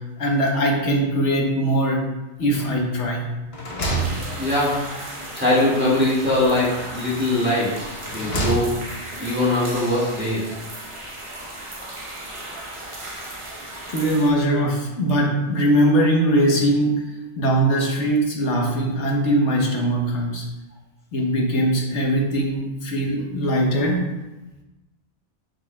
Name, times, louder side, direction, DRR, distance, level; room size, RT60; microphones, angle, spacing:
voice 1, 0.2-2.0 2.4-3.3 13.9-17.0 17.4-20.5 21.1-24.1, right 1 dB, 80° left, 0 dB, 1.4 m, -21 dB
sound 1, 2.5-3.0 3.4-5.0 6.2-7.1 7.8-9.0, right 2 dB, 60° left, 1.3 m, -29 dB
sound 2, 4.0-14.3, right 1 dB, 30° right, 0.9 m, -36 dB
voice 2, 4.4-4.8 5.0-7.7 8.1-8.7 9.2-10.5, left 1 dB, 10° right, -8 dB, 1.8 m, -21 dB
7.0 x 6.4 x 2.3 m, 1.0 s
omnidirectional pair, 1.2 m